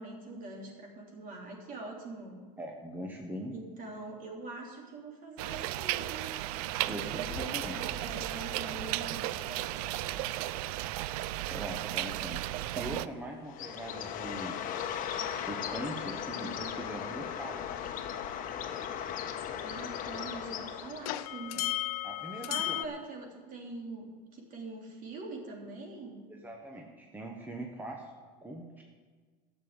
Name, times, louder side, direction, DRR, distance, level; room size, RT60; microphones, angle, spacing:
voice 1, 0.0-2.4 3.5-6.3 6.9-9.6 19.6-21.7 22.5-26.3, right 2 dB, 45° right, 0 dB, 3.3 m, -44 dB
voice 2, 2.6-3.5 6.9-7.8 11.5-12.4 12.7-14.6 15.4-17.7 21.5-21.7 22.0-22.9 26.3-28.1 28.4-28.8, right 1 dB, 10° right, 1 dB, 1.3 m, -41 dB
sound 1, 5.4-13.1, right 16 dB, 80° right, 0.4 m, -35 dB
sound 2, 7.2-18.6 18.8-22.9, left 16 dB, 80° left, 0.6 m, -42 dB
Bird, 13.5-21.2, left 9 dB, 45° left, 1.1 m, -37 dB
12.0 x 7.2 x 7.9 m, 1.5 s
supercardioid pair, 120°, 19 cm